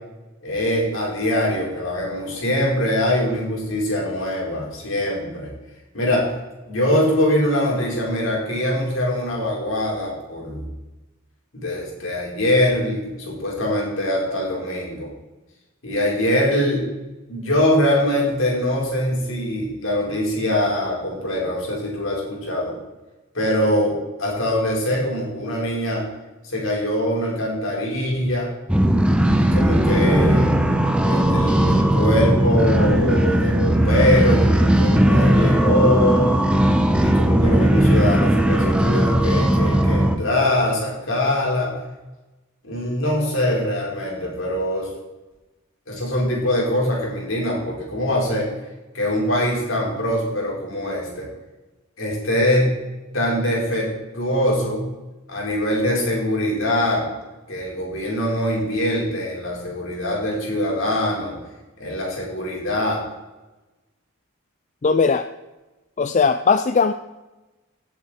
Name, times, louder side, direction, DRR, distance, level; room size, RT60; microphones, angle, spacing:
voice 1, 0.4-5.5 5.9-6.3 6.7-10.6 11.5-15.1 15.8-16.9 17.3-22.7 23.3-26.0 26.4-28.5 29.4-30.5 31.0-36.3 37.0-41.7 42.6-44.9 45.9-48.5 48.9-51.3 52.0-52.8 53.1-54.9 55.3-57.0 57.5-61.4 61.8-63.0, left 1 dB, 65° left, -3 dB, 4.7 m, -23 dB
sound 1, 28.7-40.2, right 1 dB, 5° right, 0.9 m, -17 dB
voice 2, 64.8-65.3 66.0-66.9, left 5 dB, 35° left, 10 dB, 0.4 m, -18 dB
16.5 x 8.1 x 4.5 m, 1.1 s
head